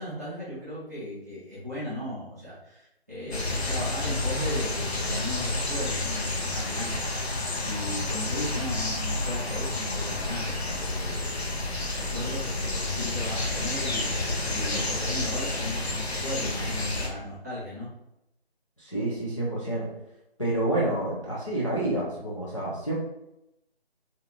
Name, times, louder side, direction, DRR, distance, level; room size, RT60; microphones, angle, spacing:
voice 1, 0.0-7.1 7.6-11.6 11.8-14.1 14.5-17.9, left 1 dB, 15° right, -11 dB, 0.7 m, -36 dB
sound 1, 3.3-17.1, left 2 dB, 90° left, 0.7 m, -30 dB
voice 2, 18.8-19.9 20.4-22.9, right 1 dB, 30° left, -6 dB, 0.5 m, -28 dB
2.5 x 2.3 x 2.9 m, 0.86 s
figure-of-eight pair, 155°, 31 cm